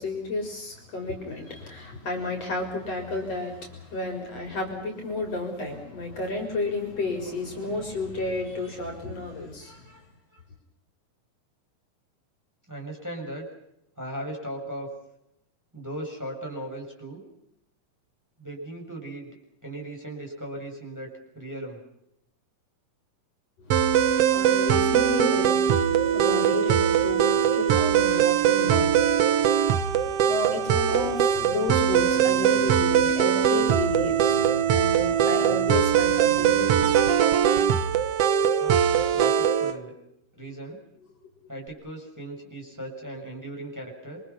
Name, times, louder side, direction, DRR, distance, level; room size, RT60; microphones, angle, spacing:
voice 1, 0.0-9.8 23.7-37.8, left 2 dB, 45° left, 2 dB, 5.5 m, -32 dB
voice 2, 12.7-13.4 14.0-14.9 15.7-17.2 18.4-19.3 19.6-21.8 38.6-39.9 40.3-40.8 41.5-44.2, right 1 dB, 5° right, -1 dB, 6.6 m, -37 dB
sound 1, 23.7-39.7, right 9 dB, 60° right, 1.7 m, -21 dB
27.5 x 25.0 x 5.8 m, 0.80 s
omnidirectional pair, 3.8 m